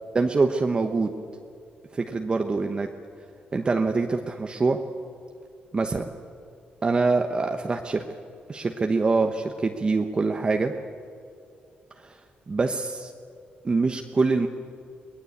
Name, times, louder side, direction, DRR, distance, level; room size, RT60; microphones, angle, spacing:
voice 1, 0.1-1.1 1.9-2.9 3.5-4.8 5.7-6.1 6.8-8.0 8.5-10.7 12.0-12.2 12.5-13.1 13.6-14.5, right 3 dB, 30° right, 4 dB, 1.1 m, -24 dB
23.0 x 19.0 x 8.6 m, 2.5 s
cardioid pair, 120°, 3 cm